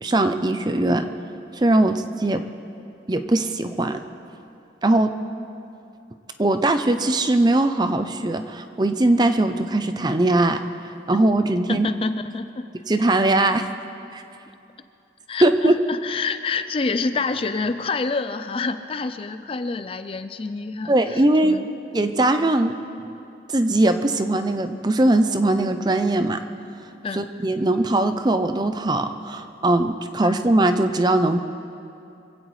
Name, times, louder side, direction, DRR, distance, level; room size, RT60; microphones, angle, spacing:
voice 1, 0.0-1.0 1.6-2.4 3.1-4.0 4.8-5.1 6.4-10.6 11.1-11.9 12.9-13.7 14.1-14.2 15.4-15.7 20.9-21.6 21.9-22.8 23.5-26.4 27.1-31.4, right 2 dB, 25° right, 8 dB, 0.5 m, -20 dB
voice 2, 11.7-12.7 15.3-21.7 27.0-27.3 30.2-30.3, left 4 dB, 30° left, 10 dB, 0.4 m, -27 dB
25.0 x 16.0 x 3.2 m, 2.7 s
head